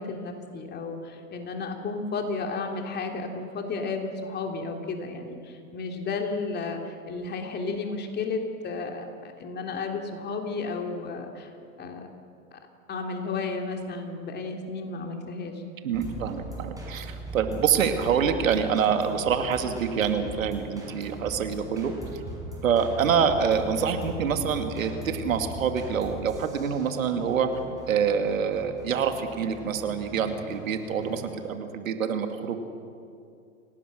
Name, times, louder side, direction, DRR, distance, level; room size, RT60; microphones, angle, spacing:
voice 1, 0.0-11.5 11.8-12.1 12.5-12.6 12.9-15.6, left 4 dB, 25° left, 3 dB, 3.1 m, -33 dB
voice 2, 15.8-22.2 22.6-27.5 27.9-32.6, right 7 dB, 70° right, 6 dB, 2.3 m, -26 dB
sound 1, 15.9-31.3, equal, 10° right, 6.3 m, -40 dB
27.5 x 18.0 x 6.4 m, 2.4 s
hypercardioid pair, 110°, 41 cm